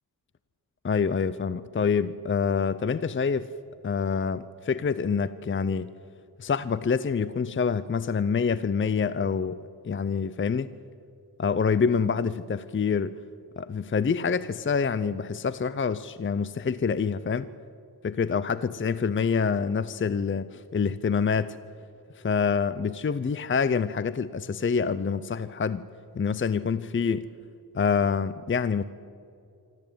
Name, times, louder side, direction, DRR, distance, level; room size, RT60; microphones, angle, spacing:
voice 1, 0.8-3.5 3.8-5.9 6.4-10.7 11.4-13.2 13.6-17.5 18.0-21.6 22.1-25.8 26.1-27.3 27.7-28.8, left 5 dB, 35° left, 16 dB, 0.6 m, -26 dB
26.0 x 13.5 x 9.0 m, 2.5 s
wide cardioid pair, 85°, 37 cm